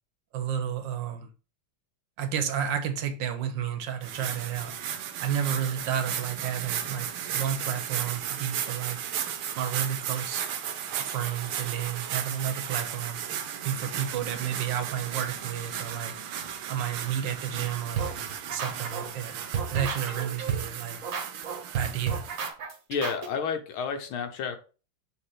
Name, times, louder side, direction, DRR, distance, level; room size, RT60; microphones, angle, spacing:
voice 1, 0.3-1.3 2.2-4.8 5.2-9.0 9.6-10.4 11.0-13.2 13.6-16.2 16.7-18.2 18.5-19.4 19.7-21.0 21.7-22.2, right 9 dB, 70° right, 1.4 m, -31 dB
sound 1, 4.0-22.5, right 9 dB, 85° right, 1.6 m, -35 dB
sound 2, 18.0-19.3 19.5-23.3, right 6 dB, 50° right, 1.2 m, -31 dB
voice 2, 22.9-24.6, left 6 dB, 80° left, 1.8 m, -30 dB
6.7 x 3.0 x 4.9 m
omnidirectional pair, 2.3 m